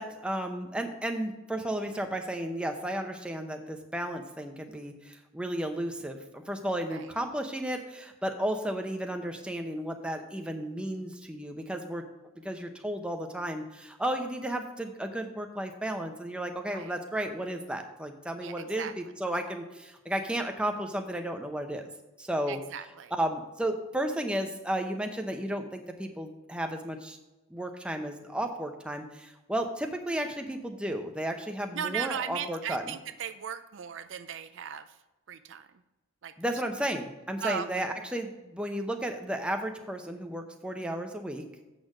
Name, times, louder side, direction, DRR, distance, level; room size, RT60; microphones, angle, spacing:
voice 1, 0.0-12.0 12.4-21.9 22.2-22.6 23.1-27.2 27.5-32.9 36.4-41.4, right 1 dB, 5° right, 4 dB, 0.7 m, -33 dB
voice 2, 18.4-18.9 22.5-23.1 31.7-35.0 35.3-35.7 36.2-36.3 37.4-37.9, right 8 dB, 60° right, 11 dB, 0.4 m, -37 dB
7.8 x 6.5 x 4.8 m, 1.1 s
head